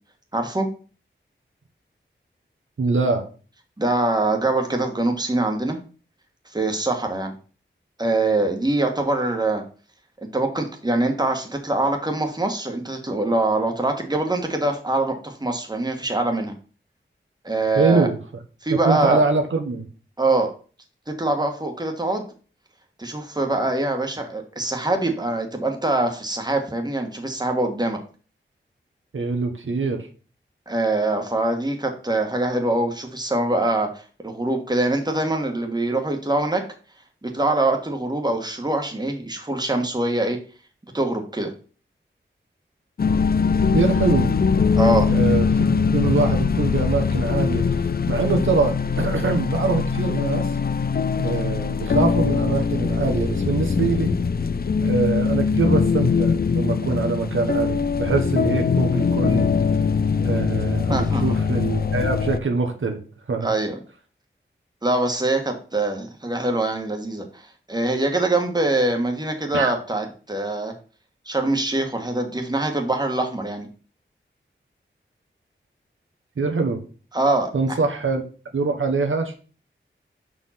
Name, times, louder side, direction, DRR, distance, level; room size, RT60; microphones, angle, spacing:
voice 1, 0.3-0.7 3.8-5.8 6.5-7.3 8.0-9.6 10.3-16.5 17.4-18.1 18.6-19.2 20.2-20.5 21.2-22.2 23.0-28.0 30.7-36.6 37.2-40.4 40.9-41.5 44.8-45.1 60.9-61.3 63.4-63.7 64.8-67.4 67.7-70.7 71.2-73.7 77.1-77.8, right 2 dB, 20° right, 3 dB, 1.5 m, -23 dB
voice 2, 2.8-3.2 17.7-18.2 18.7-19.8 29.1-30.0 43.7-44.3 45.1-47.6 48.1-50.5 51.2-54.2 54.8-59.5 60.2-63.0 63.3-63.5 69.5-69.7 76.4-76.8 77.5-78.2 78.5-79.4, right 4 dB, 85° right, 3 dB, 1.3 m, -23 dB
sound 1, 43.0-62.4, left 5 dB, 50° left, 0.5 m, -22 dB
5.8 x 4.8 x 5.8 m, 0.38 s
wide cardioid pair, 75°, 20 cm